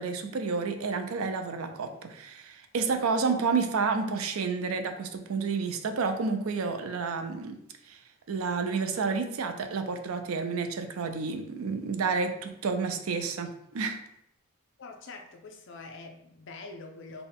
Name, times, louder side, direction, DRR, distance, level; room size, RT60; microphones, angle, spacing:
voice 1, 0.0-7.6 7.9-8.0 8.3-14.0, right 4 dB, 70° right, 7 dB, 0.4 m, -30 dB
voice 2, 14.8-17.2, left 3 dB, 55° left, 3 dB, 0.5 m, -44 dB
4.0 x 2.2 x 3.5 m, 0.76 s
head